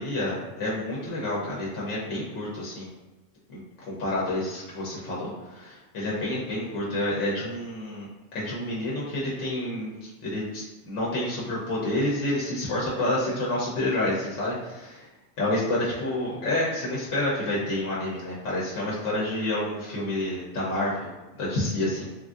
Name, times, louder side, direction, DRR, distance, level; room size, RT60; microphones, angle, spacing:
voice 1, 0.0-2.9 3.5-3.6 3.9-15.1 15.4-22.1, left 1 dB, 85° left, -6 dB, 1.0 m, -29 dB
3.3 x 2.5 x 2.4 m, 1.1 s
omnidirectional pair, 1.2 m